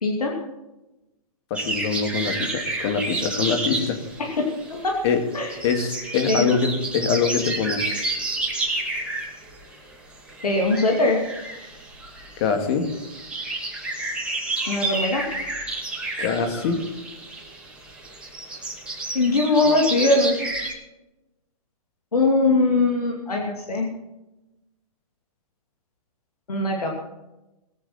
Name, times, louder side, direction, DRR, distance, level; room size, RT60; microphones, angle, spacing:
voice 1, 0.0-0.4 4.2-4.4 4.7-5.0 5.3-5.6 6.3-6.5 10.4-11.2 14.7-15.2 19.1-20.5 22.1-23.9 26.5-26.9, left 2 dB, 90° left, 0 dB, 2.4 m, -21 dB
voice 2, 1.5-4.0 5.0-5.2 5.6-8.1 12.4-12.8 16.2-16.8, left 6 dB, 45° left, 5 dB, 2.3 m, -24 dB
sound 1, 1.5-20.7, right 2 dB, 5° right, 2.4 m, -30 dB
21.0 x 8.0 x 4.4 m, 1.0 s
hypercardioid pair, 135°, 19 cm